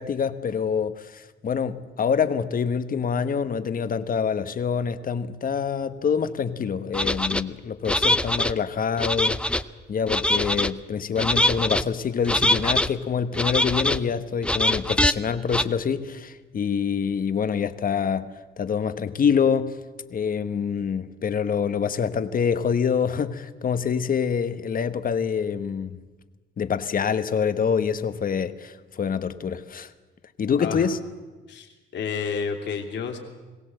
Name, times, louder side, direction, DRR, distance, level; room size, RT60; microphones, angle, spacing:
voice 1, 0.0-9.4 9.9-19.8 20.1-26.0 26.6-29.9 30.4-31.0, left 6 dB, 45° left, 1.2 m, -26 dB
sound 1, 6.9-7.4 7.9-8.5 9.0-9.6 10.1-10.7 11.2-11.8 12.3-12.9 13.3-14.0 14.4-15.1 15.5-15.6, left 1 dB, 5° left, 0.6 m, -23 dB
voice 2, 31.5-33.2, left 6 dB, 65° left, 3.0 m, -30 dB
22.5 x 16.5 x 7.8 m
cardioid pair, 90°, 20 cm